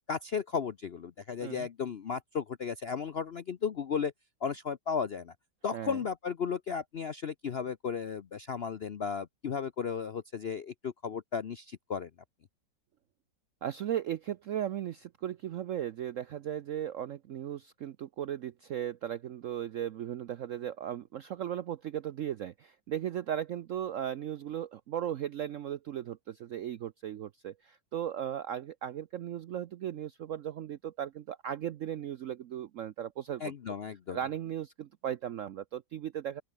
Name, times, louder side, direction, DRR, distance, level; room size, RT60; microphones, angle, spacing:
voice 1, 0.1-4.1 4.4-5.3 5.6-12.1 33.4-34.2, left 6 dB, 60° left, 0.6 m, -35 dB
voice 2, 13.6-33.4 34.1-36.4, right 10 dB, 70° right, 0.7 m, -37 dB
open air
omnidirectional pair, 2.0 m